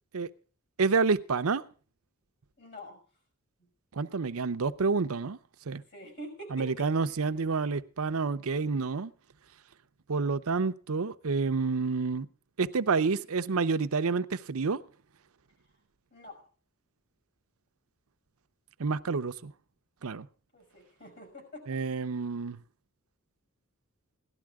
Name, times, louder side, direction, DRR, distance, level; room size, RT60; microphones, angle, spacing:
voice 1, 0.8-1.6 4.0-5.4 5.7-5.8 6.5-9.1 10.1-12.3 12.6-14.8 18.8-19.5 20.0-20.3 21.7-22.6, right 4 dB, 75° right, 0.6 m, -28 dB
voice 2, 2.6-3.0 5.9-6.9 16.1-16.4 20.5-21.8, right 1 dB, 50° left, 5.7 m, -45 dB
17.0 x 11.5 x 3.6 m
head